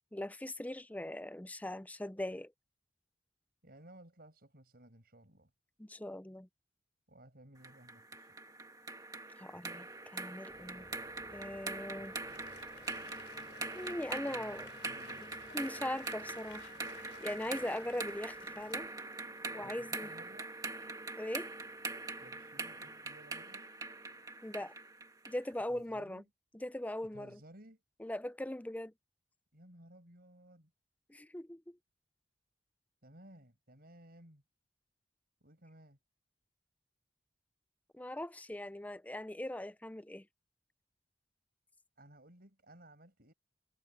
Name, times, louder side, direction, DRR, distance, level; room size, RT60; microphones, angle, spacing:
voice 1, 0.1-2.5 5.8-6.5 9.4-10.9 11.3-12.1 13.7-14.7 15.5-16.7 17.2-18.9 19.5-20.1 21.2-21.5 24.4-24.7 25.3-26.2 26.5-27.4 28.0-28.9 31.1-31.8 37.9-40.3, left 1 dB, 10° left, 0.5 m, -40 dB
voice 2, 3.6-5.5 7.1-8.3 11.9-12.1 14.2-15.2 19.6-20.5 22.2-23.7 25.7-26.2 27.1-27.8 29.5-30.7 33.0-34.4 35.4-36.0 42.0-43.3, right 1 dB, 55° right, 6.4 m, -58 dB
sound 1, 7.6-25.4, right 3 dB, 20° right, 1.8 m, -43 dB
sound 2, 10.5-18.9, left 2 dB, 25° left, 5.1 m, -60 dB
Applause, 12.0-19.7, left 6 dB, 80° left, 5.0 m, -56 dB
head